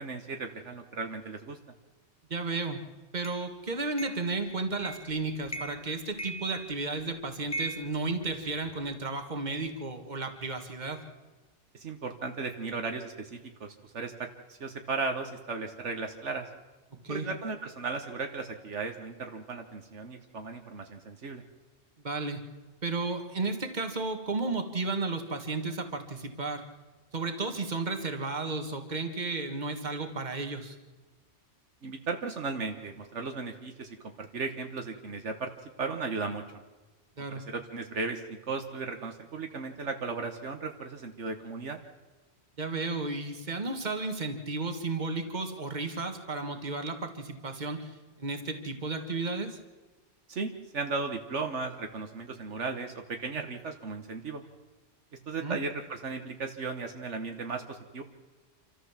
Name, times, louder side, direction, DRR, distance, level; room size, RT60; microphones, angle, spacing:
voice 1, 0.0-1.6 11.8-16.4 17.1-21.4 31.8-35.5 35.8-36.4 37.3-38.2 38.5-41.8 50.3-54.4 55.3-58.0, right 4 dB, 70° right, 5 dB, 1.6 m, -36 dB
voice 2, 2.3-2.8 3.1-11.0 17.0-17.3 22.0-22.4 22.8-26.7 27.1-30.8 37.2-37.4 42.6-49.6 55.4-55.6, right 3 dB, 35° right, 6 dB, 1.9 m, -33 dB
sound 1, 3.2-3.4 4.0-4.3 4.8-5.1 5.5-5.9 6.2-7.0 7.5-8.8, right 1 dB, 15° left, 1.3 m, -39 dB
27.0 x 14.0 x 7.4 m, 1.2 s
omnidirectional pair, 1.2 m